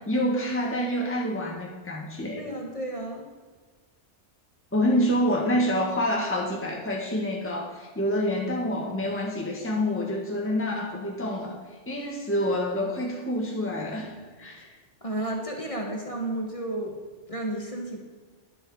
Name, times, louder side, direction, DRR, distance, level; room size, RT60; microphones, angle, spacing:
voice 1, 0.0-2.4 4.7-11.6 11.9-14.7, equal, 10° left, -1 dB, 1.6 m, -27 dB
voice 2, 2.3-3.3 15.0-17.0 17.3-18.0, right 1 dB, 30° left, 0 dB, 1.8 m, -32 dB
11.0 x 10.5 x 4.8 m, 1.4 s
omnidirectional pair, 1.2 m